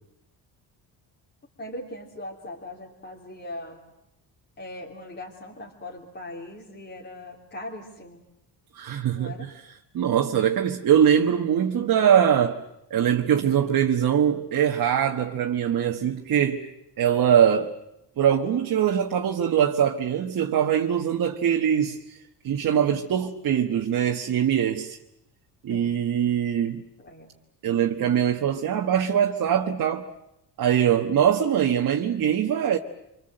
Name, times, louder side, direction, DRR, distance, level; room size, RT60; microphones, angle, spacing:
voice 1, 1.6-3.8 4.6-8.2 9.1-9.5 25.7-25.9 27.0-27.3, left 1 dB, 25° left, 3.4 m, -40 dB
voice 2, 8.7-12.6 12.9-16.7 17.0-17.7 18.2-22.2 22.4-25.0 25.6-26.8 27.6-30.1 30.6-32.8, right 9 dB, 55° right, 1.5 m, -22 dB
26.0 x 25.5 x 7.9 m
cardioid pair, 105°, 41 cm